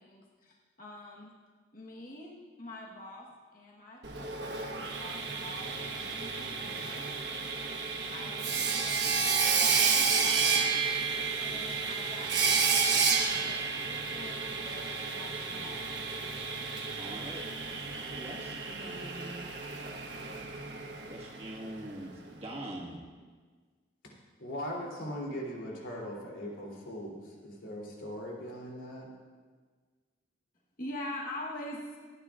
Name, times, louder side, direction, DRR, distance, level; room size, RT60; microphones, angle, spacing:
voice 1, 0.0-1.3 1.7-7.1 8.1-10.7 11.4-16.0 30.8-32.0, left 1 dB, 45° left, -3 dB, 1.4 m, -45 dB
Sawing, 4.0-21.9, right 5 dB, 60° right, 1.4 m, -31 dB
voice 2, 17.0-17.5 18.0-19.7 21.1-23.0, right 1 dB, 30° right, -3 dB, 1.7 m, -43 dB
voice 3, 24.4-29.1, equal, 90° left, -3 dB, 3.3 m, -40 dB
26.0 x 9.5 x 2.5 m, 1.5 s
head